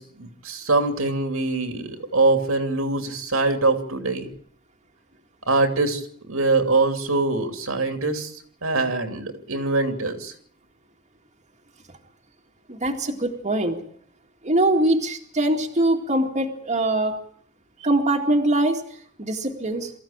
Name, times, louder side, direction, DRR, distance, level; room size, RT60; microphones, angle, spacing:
voice 1, 0.0-4.3 5.5-8.3 8.6-10.3, right 3 dB, 70° right, 6 dB, 2.8 m, -23 dB
voice 2, 12.7-13.8 14.4-17.2 17.8-19.9, right 1 dB, 35° right, 2 dB, 2.1 m, -23 dB
23.0 x 15.0 x 8.8 m, 0.63 s
head